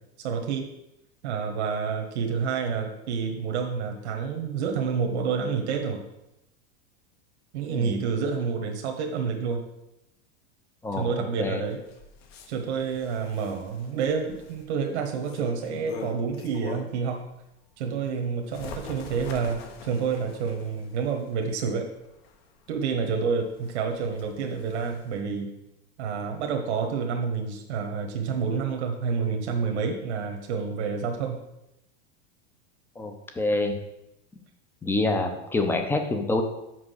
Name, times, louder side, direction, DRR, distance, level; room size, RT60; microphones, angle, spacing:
voice 1, 0.2-0.7 1.2-6.0 7.5-9.6 11.0-11.8 12.5-17.2 17.8-21.9 22.7-25.5 26.0-31.4, right 5 dB, 75° right, 3 dB, 1.3 m, -28 dB
Bird, 11.7-17.1 17.5-25.2, left 5 dB, 65° left, 1.2 m, -45 dB
voice 2, 33.0-33.8 34.8-36.4, left 2 dB, 5° left, 5 dB, 0.5 m, -26 dB
6.1 x 4.8 x 6.4 m, 0.88 s
supercardioid pair, 155°, 33 cm